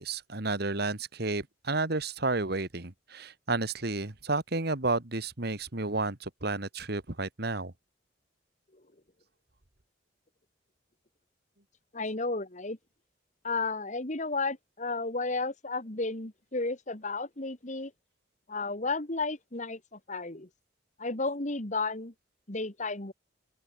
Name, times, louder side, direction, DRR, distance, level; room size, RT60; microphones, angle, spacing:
voice 1, 0.0-7.7, right 3 dB, 55° right, 2.0 m, -31 dB
voice 2, 11.9-12.8 13.4-17.9 18.5-20.5 21.0-22.1 22.5-23.1, left 3 dB, 40° left, 2.2 m, -33 dB
open air
head